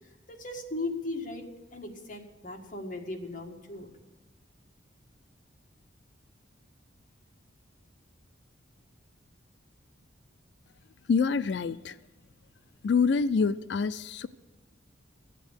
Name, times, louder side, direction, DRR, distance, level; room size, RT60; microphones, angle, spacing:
voice 1, 0.3-3.9, left 2 dB, 40° left, 2 dB, 1.8 m, -37 dB
voice 2, 11.1-12.0 12.8-14.3, left 5 dB, 60° left, 15 dB, 0.4 m, -26 dB
15.0 x 8.3 x 8.0 m, 1.2 s
head